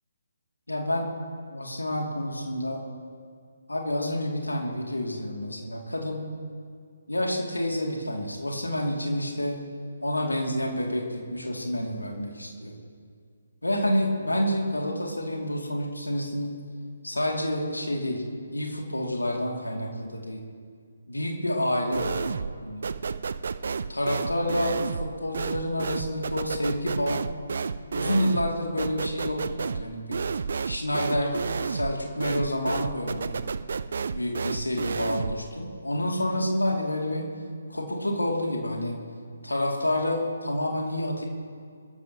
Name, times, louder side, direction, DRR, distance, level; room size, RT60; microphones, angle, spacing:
voice 1, 0.7-1.1 1.5-2.8 3.7-6.3 7.1-9.6 10.0-12.7 13.6-16.5 17.0-18.2 18.5-20.4 21.1-22.9 23.9-27.2 27.9-30.2 30.6-31.4 31.6-33.4 34.1-37.3 37.7-38.9 39.4-41.3, left 1 dB, 75° left, 0 dB, 2.7 m, -28 dB
sound 1, 21.9-22.6 22.8-35.4, right 5 dB, 50° right, 0.5 m, -31 dB
25.0 x 14.0 x 3.0 m, 2.1 s
figure-of-eight pair, 140°, 0 cm